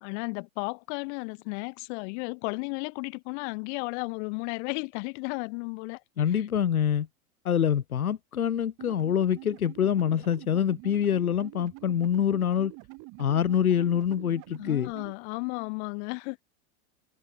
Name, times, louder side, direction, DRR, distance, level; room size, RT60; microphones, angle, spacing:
voice 1, 0.0-6.0 6.3-6.4 14.6-16.4, left 32 dB, 55° left, 5.7 m, -34 dB
voice 2, 6.2-7.1 7.4-12.7 13.2-14.9, left 9 dB, 85° left, 1.6 m, -25 dB
sound 1, 8.8-15.1, right 25 dB, 45° right, 6.3 m, -46 dB
hypercardioid pair, 100°, 42 cm